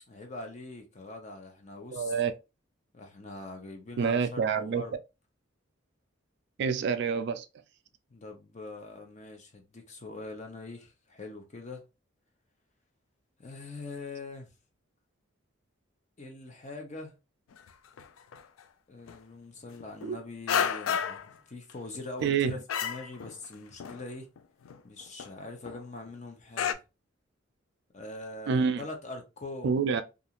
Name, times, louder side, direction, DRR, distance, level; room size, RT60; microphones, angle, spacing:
voice 1, 0.1-2.1 2.9-4.9 8.1-11.8 13.4-14.5 16.2-17.1 18.9-24.3 24.8-26.8 27.9-29.8, left 2 dB, 35° left, 0.6 m, -43 dB
voice 2, 1.9-2.3 4.0-4.8 6.6-7.5 20.0-20.2 22.2-22.6 28.5-28.8 29.6-30.0, right 6 dB, 60° right, 0.3 m, -27 dB
sound 1, 17.5-17.7 18.0-18.6 19.1-19.2 19.7-20.1 20.5-21.3 21.7-22.4 22.7-23.5 23.8-24.0 24.4-24.5 24.6-25.3 25.7-25.8 26.1-26.2 26.6-26.7, left 8 dB, 90° left, 0.3 m, -31 dB
2.4 x 2.4 x 2.8 m
head